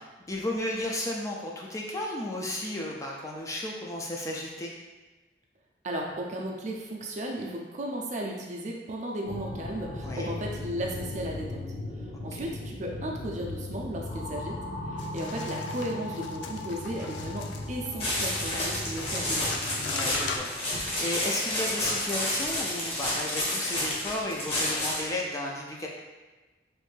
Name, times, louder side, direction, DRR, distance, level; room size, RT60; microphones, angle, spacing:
voice 1, 0.0-4.7 10.0-10.3 19.8-25.9, left 1 dB, 20° left, -2 dB, 0.4 m, -34 dB
voice 2, 5.8-11.6 12.0-14.6 14.9-19.5, right 1 dB, 45° right, 0 dB, 0.5 m, -35 dB
sound 1, 9.2-20.4, left 1 dB, 65° left, 0.8 m, -37 dB
sound 2, 15.0-20.9, left 4 dB, 85° left, 0.4 m, -41 dB
sound 3, 18.0-25.1, left 1 dB, 35° left, 0.9 m, -30 dB
3.2 x 2.5 x 3.2 m, 1.2 s
head